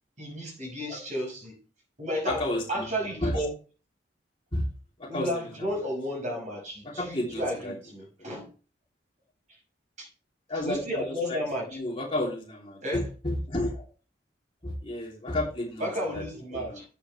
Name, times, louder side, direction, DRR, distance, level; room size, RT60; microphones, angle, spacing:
voice 1, 0.2-1.6 2.0-2.4 2.7-3.5 5.1-8.5 9.5-9.6 10.0-10.1 10.6-11.6 12.8-13.0 15.8-16.8, equal, 45° right, 5.6 m, -33 dB
voice 2, 2.2-3.5 4.5-4.7 5.0-5.8 6.8-7.7 8.2-8.4 10.5-13.8 14.6-16.2 16.5-16.8, left 1 dB, 30° left, 3.1 m, -32 dB
11.5 x 8.6 x 3.3 m
head